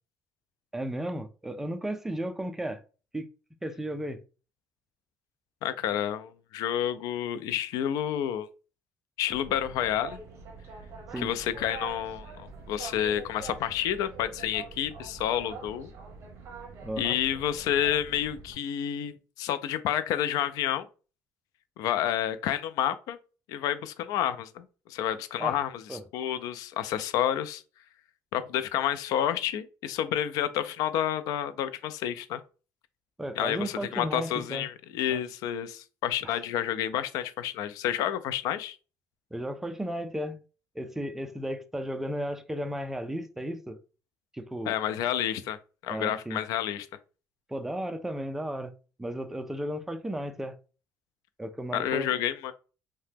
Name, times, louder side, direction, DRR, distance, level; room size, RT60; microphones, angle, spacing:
voice 1, 0.7-2.8 3.1-3.3 3.6-4.2 11.1-11.3 16.8-17.2 25.4-25.6 25.9-26.0 33.2-34.7 35.1-35.2 36.2-36.4 39.3-40.4 40.8-43.8 44.3-44.8 45.9-46.4 47.5-48.7 49.0-50.5 51.4-52.1, right 1 dB, 5° right, 0.3 m, -34 dB
voice 2, 5.6-8.5 9.2-10.2 11.2-15.9 17.0-20.9 21.8-23.2 23.5-27.6 28.3-32.4 33.4-38.8 44.7-45.6 45.8-46.9 51.7-52.5, left 10 dB, 75° left, 0.3 m, -29 dB
Boat Water vehicle, 9.3-18.5, right 4 dB, 45° right, 0.7 m, -44 dB
2.8 x 2.1 x 3.3 m
cardioid pair, 160°, 6 cm